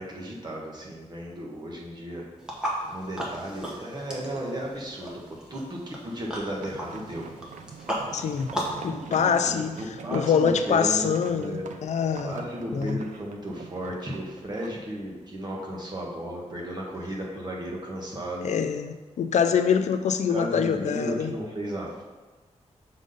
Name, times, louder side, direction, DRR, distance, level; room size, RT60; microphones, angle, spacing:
voice 1, 0.0-2.2 2.9-7.3 8.9-11.7 12.2-18.5 20.3-22.0, right 1 dB, 35° right, -2 dB, 1.3 m, -34 dB
sound 1, 2.4-8.8, equal, 5° right, 1.0 m, -36 dB
sound 2, 6.6-14.8, right 5 dB, 85° right, 0.5 m, -43 dB
voice 2, 8.1-8.5 8.8-9.7 10.1-12.4 12.7-13.0 18.4-21.3, left 7 dB, 70° left, 9 dB, 0.4 m, -25 dB
6.2 x 4.0 x 5.1 m, 1.3 s
wide cardioid pair, 175°, 12 cm